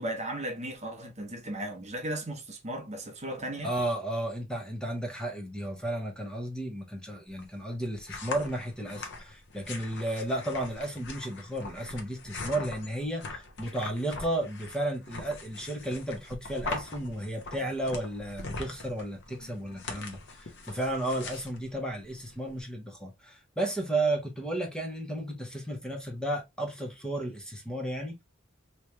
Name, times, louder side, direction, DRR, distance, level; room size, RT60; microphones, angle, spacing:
voice 1, 0.0-3.7, right 1 dB, 35° right, 0.9 m, -36 dB
voice 2, 3.6-28.2, right 1 dB, 5° left, 0.9 m, -33 dB
sound 1, 7.3-22.6, left 3 dB, 60° left, 0.9 m, -42 dB
3.1 x 3.0 x 3.2 m
head